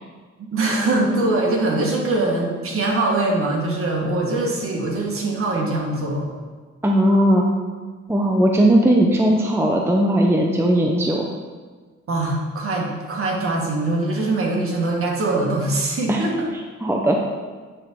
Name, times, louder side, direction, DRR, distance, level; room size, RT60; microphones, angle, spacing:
voice 1, 0.4-6.2 12.1-16.5, right 2 dB, 45° right, -2 dB, 1.7 m, -22 dB
voice 2, 6.8-7.5 8.1-11.3 16.1-16.2 16.8-17.2, right 1 dB, 10° right, 1 dB, 0.6 m, -18 dB
9.1 x 3.7 x 4.6 m, 1.4 s
cardioid pair, 90°, 30 cm